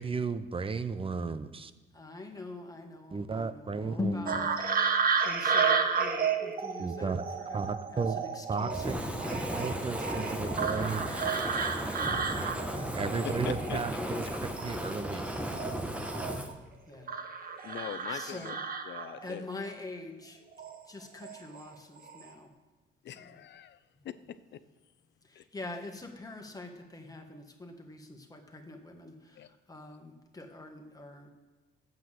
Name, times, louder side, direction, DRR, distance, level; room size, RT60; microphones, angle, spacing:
voice 1, 0.0-1.7 3.1-4.2 6.8-7.2 7.5-8.2 8.5-9.0 9.3-11.1 12.8-14.3 14.6-15.4, right 4 dB, 25° right, 12 dB, 0.7 m, -34 dB
voice 2, 1.9-11.4 12.1-12.3 16.9-17.1 18.1-18.6 19.2-20.4 20.9-22.5 23.1-23.4 25.3-29.4 29.7-31.3, left 2 dB, 20° left, 3 dB, 1.7 m, -43 dB
sound 1, 4.3-14.3 14.6-16.5 17.1-19.3 20.5-20.8 21.2-21.7 22.0-22.3, right 5 dB, 45° right, 1.1 m, -32 dB
Fire, 8.7-16.5, equal, 5° right, 1.2 m, -35 dB
voice 3, 13.1-13.8 17.6-18.5 18.8-19.5 23.0-23.8 24.0-24.1 24.5-24.6 25.4-25.5 29.3-29.5, left 10 dB, 65° left, 14 dB, 0.7 m, -41 dB
9.1 x 8.2 x 7.5 m, 1.2 s
cardioid pair, 90°, 20 cm